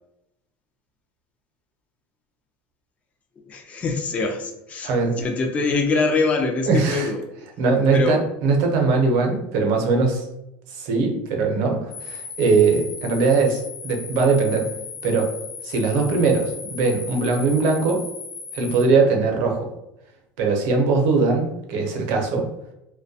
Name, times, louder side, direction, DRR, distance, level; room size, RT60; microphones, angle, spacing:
voice 1, 3.5-7.2 7.9-8.2, left 3 dB, 25° left, 2 dB, 0.3 m, -24 dB
voice 2, 4.8-5.2 6.7-7.1 7.6-10.2 10.7-14.7 15.0-15.3 15.6-18.1 18.5-19.7 20.4-22.5, right 4 dB, 65° right, 2 dB, 0.6 m, -20 dB
sound 1, 11.9-18.9, left 4 dB, 65° left, 0.7 m, -37 dB
2.2 x 2.1 x 2.6 m, 0.87 s
supercardioid pair, 130°, 6 cm